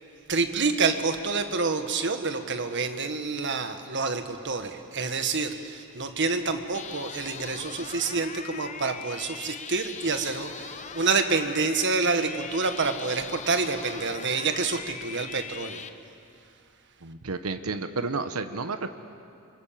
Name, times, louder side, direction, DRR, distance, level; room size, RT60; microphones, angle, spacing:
voice 1, 0.3-15.8, right 4 dB, 55° right, 7 dB, 1.6 m, -28 dB
sound 1, 6.7-15.9, left 6 dB, 30° left, 0.8 m, -40 dB
voice 2, 17.0-19.0, right 4 dB, 80° right, 9 dB, 1.1 m, -31 dB
27.0 x 24.5 x 7.5 m, 2.6 s
head